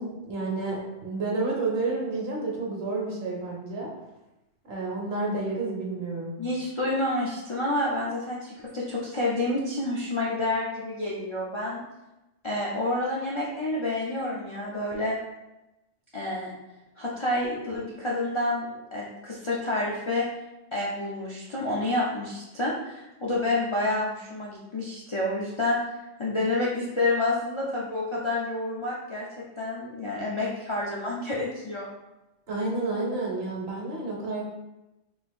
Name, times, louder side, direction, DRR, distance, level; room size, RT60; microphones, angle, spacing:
voice 1, 0.0-3.9 4.6-6.3 32.5-34.4, right 3 dB, 55° right, -2 dB, 1.0 m, -30 dB
voice 2, 6.4-11.8 12.4-15.2 16.1-16.5 17.0-20.3 20.7-25.8 26.2-29.3 29.6-31.9, left 2 dB, 45° left, -6 dB, 0.4 m, -29 dB
3.7 x 2.4 x 3.4 m, 0.97 s
omnidirectional pair, 1.3 m